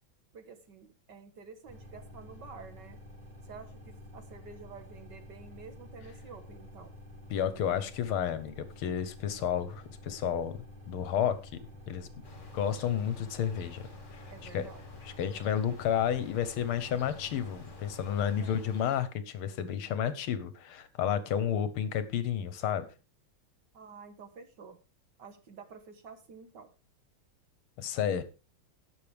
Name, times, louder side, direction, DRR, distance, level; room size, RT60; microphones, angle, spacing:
voice 1, 0.3-3.0 3.4-6.9 14.3-14.8 18.4-18.8 23.7-24.8 25.2-26.7, right 5 dB, 55° right, 1.8 m, -50 dB
sound 1, 1.7-18.5, left 1 dB, 5° left, 6.0 m, -50 dB
voice 2, 7.3-11.6 11.9-12.1 12.5-13.9 14.5-14.7 15.1-22.9 27.8-28.2, left 9 dB, 75° left, 1.8 m, -31 dB
sound 2, 12.2-19.0, left 3 dB, 35° left, 2.2 m, -52 dB
17.5 x 6.6 x 3.4 m
omnidirectional pair, 2.4 m